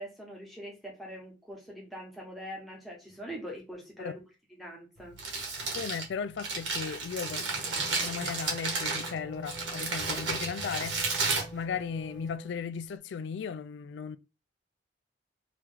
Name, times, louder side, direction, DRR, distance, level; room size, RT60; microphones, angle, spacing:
voice 1, 0.0-4.2 4.5-5.1, equal, ahead, 1.2 m, -43 dB
Crumpling crinkling, 5.0-12.3, right 3 dB, 75° right, 1.4 m, -33 dB
voice 2, 5.7-11.2 11.5-14.2, left 6 dB, 65° left, 0.3 m, -36 dB
Wind instrument woodwind instrument, 7.4-12.6, equal, 25° left, 0.7 m, -48 dB
3.0 x 3.0 x 3.6 m
head